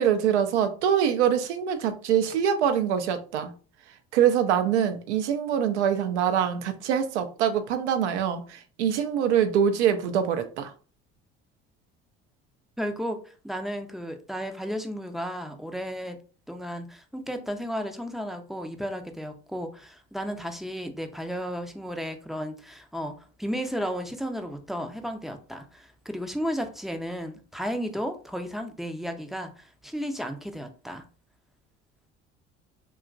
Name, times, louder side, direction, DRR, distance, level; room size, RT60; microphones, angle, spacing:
voice 1, 0.0-3.5 4.1-10.7, right 8 dB, 85° right, 0.5 m, -24 dB
voice 2, 12.8-16.2 16.5-31.0, equal, ahead, 0.4 m, -33 dB
2.8 x 2.3 x 2.4 m
hypercardioid pair, 65°, 33 cm